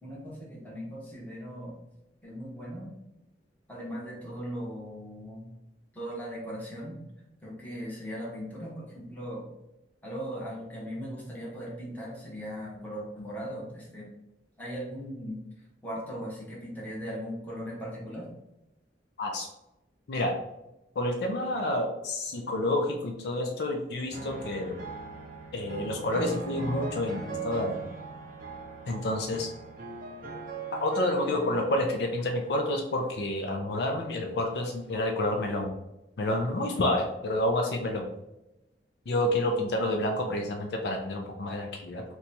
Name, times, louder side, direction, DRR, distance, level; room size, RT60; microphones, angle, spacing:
voice 1, 0.0-1.7 2.2-2.9 3.7-5.5 5.9-7.0 7.4-9.4 10.0-14.1 14.6-15.4 15.8-18.3, equal, 10° left, -6 dB, 1.0 m, -38 dB
voice 2, 21.0-24.8 25.5-27.8 28.9-29.5 30.7-35.7 36.2-38.1 39.1-42.0, left 1 dB, 70° left, 2 dB, 0.4 m, -29 dB
sound 1, 24.1-32.7 33.5-34.0, right 3 dB, 45° right, 0.5 m, -40 dB
2.8 x 2.2 x 4.0 m, 0.92 s
head